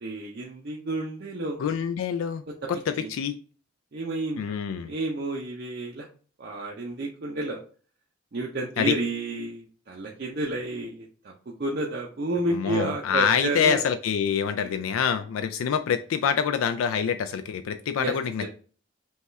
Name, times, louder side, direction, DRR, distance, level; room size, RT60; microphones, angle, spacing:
voice 1, 0.0-1.6 2.5-2.6 3.0-3.1 3.9-4.6 4.8-6.1 6.4-7.6 8.3-11.3 11.6-13.8 14.6-14.7 18.0-18.5, right 2 dB, 50° right, -1 dB, 0.5 m, -31 dB
voice 2, 1.6-2.4 2.7-3.3 4.4-4.9 8.8-9.0 12.5-18.5, left 7 dB, 85° left, 9 dB, 0.3 m, -26 dB
5.4 x 2.3 x 3.0 m, 0.41 s
head